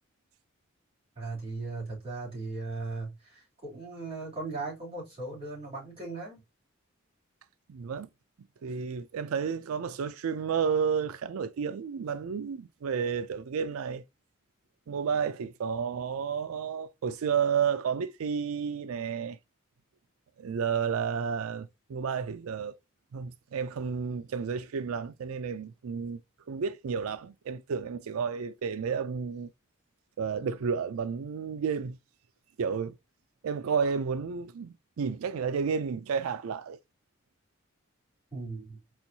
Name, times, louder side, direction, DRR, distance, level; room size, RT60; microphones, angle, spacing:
voice 1, 1.1-6.4 38.3-38.8, right 3 dB, 25° right, 3.3 m, -38 dB
voice 2, 7.7-8.1 8.6-14.0 14.9-19.4 20.4-22.7 23.1-26.2 26.5-29.5 30.2-32.0 32.6-32.9 33.4-36.8, right 6 dB, 80° right, 0.4 m, -31 dB
4.4 x 4.4 x 2.7 m
head